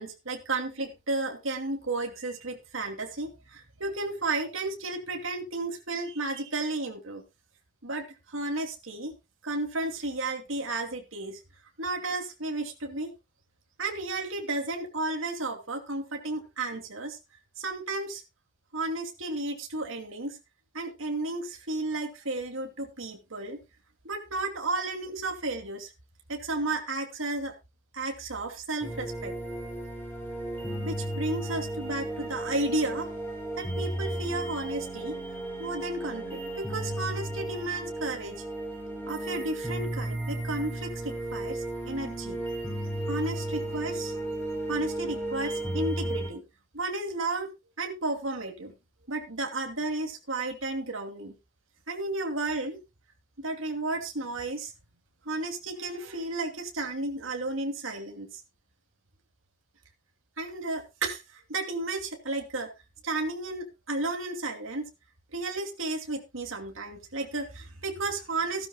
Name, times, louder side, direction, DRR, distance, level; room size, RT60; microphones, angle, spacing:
voice 1, 0.0-7.2 7.8-9.1 9.4-11.4 11.8-13.1 13.8-17.2 17.6-18.2 18.7-20.4 20.7-23.6 24.0-25.9 26.3-27.5 27.9-29.3 30.8-33.1 33.6-35.2 35.6-38.3 39.0-42.4 43.1-44.1 44.7-46.4 46.7-47.5 47.8-48.7 49.1-51.3 51.9-52.8 53.4-54.7 55.3-58.3 60.4-61.2 61.5-62.7 63.0-64.9 65.3-68.7, right 2 dB, 70° right, 3 dB, 2.8 m, -33 dB
sound 1, 28.8-46.3, right 1 dB, 10° left, 5.7 m, -34 dB
16.0 x 12.5 x 2.3 m, 0.25 s
head